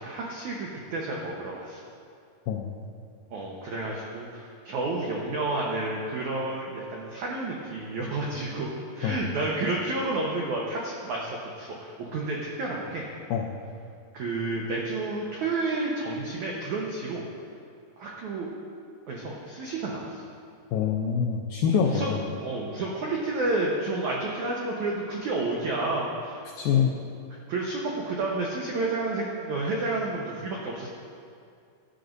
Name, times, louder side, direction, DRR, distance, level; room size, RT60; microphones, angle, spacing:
voice 1, 0.0-1.8 3.3-13.1 14.1-17.2 18.0-18.5 19.1-20.2 21.7-26.4 26.7-26.9 27.5-30.9, right 2 dB, 85° right, -2 dB, 1.7 m, -30 dB
voice 2, 20.7-22.2 26.6-26.9, left 7 dB, 85° left, 1 dB, 2.1 m, -25 dB
17.5 x 11.5 x 2.6 m, 2.4 s
omnidirectional pair, 5.0 m